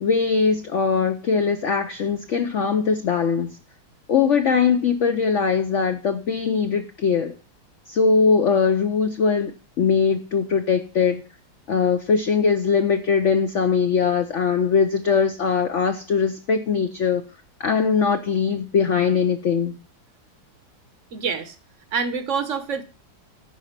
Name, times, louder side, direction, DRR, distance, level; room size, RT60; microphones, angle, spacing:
voice 1, 0.0-3.5 4.1-7.3 7.9-11.2 11.7-17.2 17.6-19.8, left 5 dB, 65° left, 0.7 m, -21 dB
voice 2, 21.1-21.6 21.9-22.8, right 5 dB, 55° right, 0.9 m, -26 dB
10.0 x 5.4 x 5.8 m
omnidirectional pair, 2.1 m